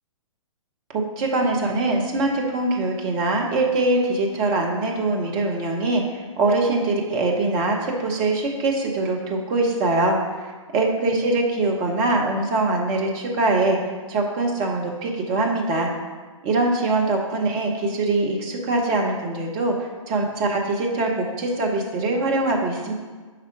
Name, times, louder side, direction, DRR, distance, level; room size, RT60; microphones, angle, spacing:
voice 1, 0.9-10.2 10.7-15.9 16.4-22.9, right 2 dB, 25° right, 0 dB, 0.8 m, -23 dB
5.5 x 3.6 x 4.7 m, 1.4 s
figure-of-eight pair, 120°, 17 cm